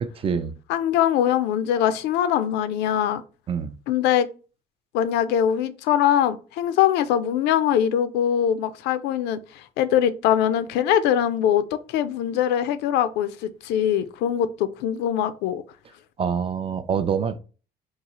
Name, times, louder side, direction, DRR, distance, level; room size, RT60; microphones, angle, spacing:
voice 1, 0.0-0.5 3.5-3.7 16.2-17.4, right 7 dB, 35° right, 0.3 m, -25 dB
voice 2, 0.7-3.2 3.9-4.3 4.9-11.6 11.9-15.6, left 10 dB, 85° left, 0.4 m, -22 dB
3.9 x 2.3 x 2.9 m
cardioid pair, 110°, 17 cm